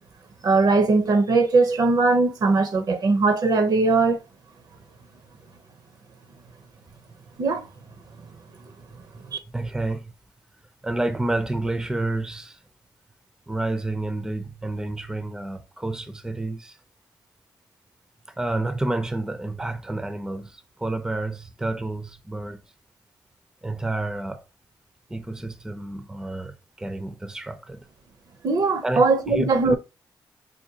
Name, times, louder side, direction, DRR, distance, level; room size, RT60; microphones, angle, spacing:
voice 1, 0.4-4.2 7.4-7.7 9.3-9.4 28.4-29.8, right 3 dB, 55° right, 0.6 m, -20 dB
voice 2, 9.5-10.1 10.8-12.6 13.5-16.8 18.4-22.6 23.6-24.4 25.1-27.8 28.8-29.7, right 2 dB, 10° right, 0.4 m, -29 dB
5.0 x 2.2 x 2.7 m
cardioid pair, 85°, 8 cm